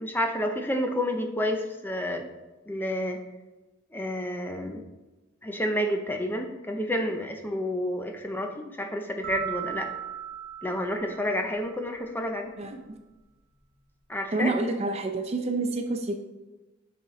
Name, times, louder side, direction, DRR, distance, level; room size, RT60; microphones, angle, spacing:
voice 1, 0.0-2.3 2.7-3.2 3.9-4.8 5.4-9.9 10.6-12.5 14.1-14.5, left 1 dB, 10° left, 4 dB, 0.6 m, -30 dB
sound 1, 9.2-12.0, right 10 dB, 45° right, 1.2 m, -37 dB
voice 2, 14.3-16.2, right 2 dB, 30° right, 6 dB, 0.5 m, -28 dB
7.1 x 4.2 x 4.8 m, 1.1 s
head